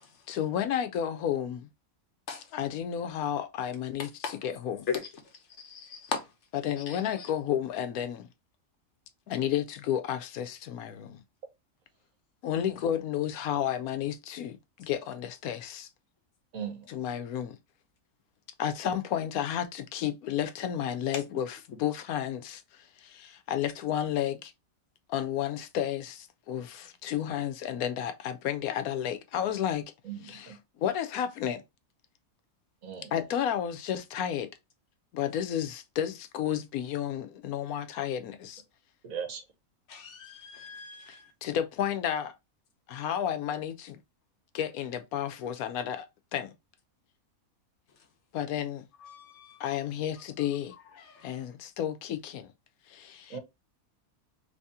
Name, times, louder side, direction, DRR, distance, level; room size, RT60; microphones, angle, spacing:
voice 1, 0.3-1.7 2.5-4.8 6.6-8.3 9.3-11.2 12.4-15.9 16.9-17.6 18.6-24.5 25.1-29.8 30.3-30.5 30.8-31.6 33.1-34.5 35.1-38.6 41.4-42.3 42.9-44.0 44.5-46.1 46.3-46.5 48.3-48.8 49.6-50.7 51.2-52.5 52.9-53.3, left 10 dB, 85° left, 1.1 m, -32 dB
voice 2, 5.6-6.2 6.9-7.0 39.9-41.1 49.0-49.6, left 6 dB, 60° left, 1.2 m, -36 dB
voice 3, 16.5-16.9 30.0-30.6 32.8-33.1 39.0-39.4 53.3-53.4, right 7 dB, 75° right, 1.4 m, -38 dB
3.2 x 2.7 x 3.5 m
omnidirectional pair, 1.5 m